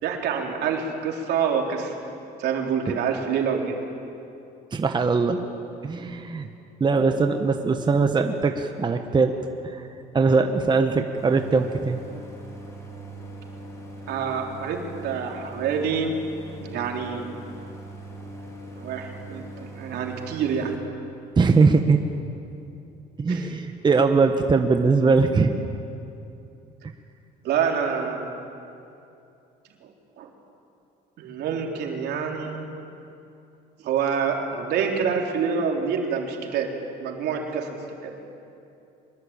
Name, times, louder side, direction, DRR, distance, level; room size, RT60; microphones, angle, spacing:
voice 1, 0.0-2.1 2.4-3.8 6.9-7.1 14.1-16.1 16.6-17.3 18.7-20.7 23.3-23.5 27.4-28.3 29.8-29.9 30.2-30.3 31.2-32.7 33.8-36.7 37.0-38.2, right 6 dB, 75° right, 2 dB, 3.6 m, -27 dB
voice 2, 4.7-5.4 5.8-6.5 6.8-9.3 9.6-9.9 10.1-12.0 21.4-22.0 23.2-25.5, right 4 dB, 25° right, 6 dB, 1.3 m, -21 dB
Idling, 11.2-20.8, right 1 dB, 15° left, 4.9 m, -41 dB
24.0 x 22.0 x 8.8 m, 2.7 s
cardioid pair, 110°, 17 cm